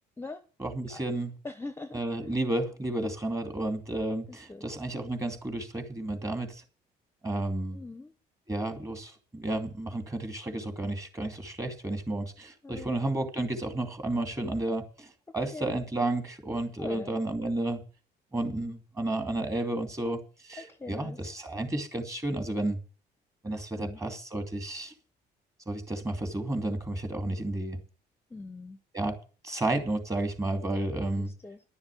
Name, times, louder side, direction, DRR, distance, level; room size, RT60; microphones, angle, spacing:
voice 1, 0.6-1.3 1.9-6.6 7.2-7.8 8.5-15.1 15.3-17.8 18.3-22.8 23.4-24.9 25.7-27.8 28.9-29.2 29.4-31.3, right 2 dB, 20° right, 6 dB, 2.6 m, -32 dB
voice 2, 1.4-2.3 4.3-4.7 7.7-8.1 12.6-12.9 15.3-15.7 16.8-17.2 20.6-21.2 23.8-24.0 28.3-28.8 31.2-31.6, left 3 dB, 15° left, 11 dB, 0.8 m, -42 dB
11.0 x 7.2 x 8.3 m, 0.36 s
cardioid pair, 110°, 17 cm